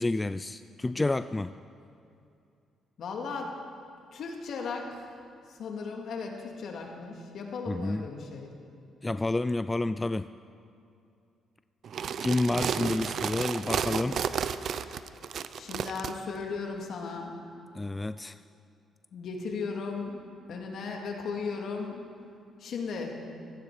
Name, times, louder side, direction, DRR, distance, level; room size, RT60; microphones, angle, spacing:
voice 1, 0.0-1.5 7.7-8.1 9.0-10.3 12.2-14.2 17.7-18.4, left 2 dB, 15° left, 12 dB, 0.3 m, -29 dB
voice 2, 3.0-3.5 4.1-5.1 5.5-8.5 15.6-17.4 19.1-20.2 20.5-22.0 22.6-23.2, left 4 dB, 65° left, 1 dB, 2.3 m, -36 dB
sound 1, 11.8-16.1, right 7 dB, 60° right, 0.6 m, -32 dB
17.0 x 14.0 x 4.9 m, 2.5 s
cardioid pair, 90°, 0 cm